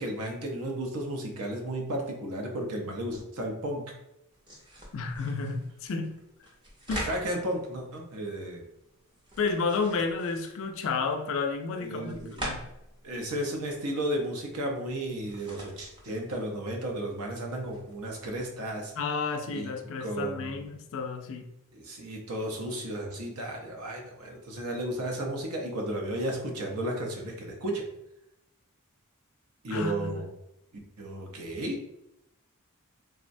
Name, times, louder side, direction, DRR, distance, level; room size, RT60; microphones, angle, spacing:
voice 1, 0.0-3.9 7.0-8.7 11.8-12.5 13.0-18.9 19.5-19.7 20.0-20.7 21.7-27.8 29.6-30.3 31.0-31.8, right 1 dB, 75° right, 1 dB, 0.7 m, -33 dB
sound 1, 4.3-18.8, equal, 20° right, 0.6 m, -45 dB
voice 2, 4.9-6.2 6.9-7.1 9.4-12.6 19.0-21.5 29.7-30.2, left 4 dB, 60° left, 5 dB, 0.4 m, -31 dB
3.5 x 2.1 x 2.5 m, 0.85 s
head